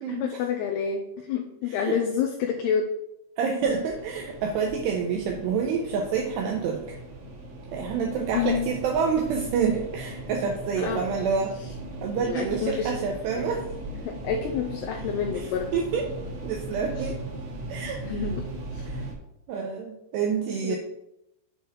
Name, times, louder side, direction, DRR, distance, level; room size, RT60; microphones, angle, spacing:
voice 1, 0.1-2.9 5.9-6.0 8.3-8.7 10.8-11.0 12.1-12.9 13.4-13.5 14.0-15.7 17.0-17.1 18.0-18.4 18.8-18.9 20.7-20.8, left 7 dB, 80° left, 2 dB, 2.5 m, -28 dB
voice 2, 1.7-2.0 3.4-7.0 7.7-11.5 12.0-13.7 15.3-16.1 16.4-17.2 17.7-18.0 18.3-18.4 18.9-19.0 19.5-20.8, right 6 dB, 75° right, 1 dB, 2.6 m, -28 dB
sound 1, 3.6-19.1, right 1 dB, 55° right, 2.7 m, -38 dB
7.9 x 4.3 x 5.3 m, 0.82 s
omnidirectional pair, 5.3 m